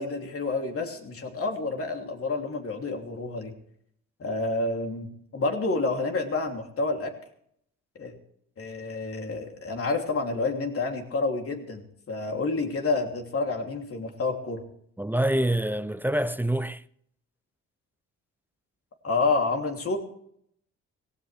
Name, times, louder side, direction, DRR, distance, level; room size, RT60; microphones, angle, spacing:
voice 1, 0.0-3.5 4.2-7.1 8.0-8.1 8.6-14.6 19.0-20.0, left 3 dB, 50° left, 3.1 m, -29 dB
voice 2, 15.0-16.8, right 1 dB, 5° right, 0.5 m, -26 dB
17.5 x 17.0 x 3.4 m
cardioid pair, 90°, 30 cm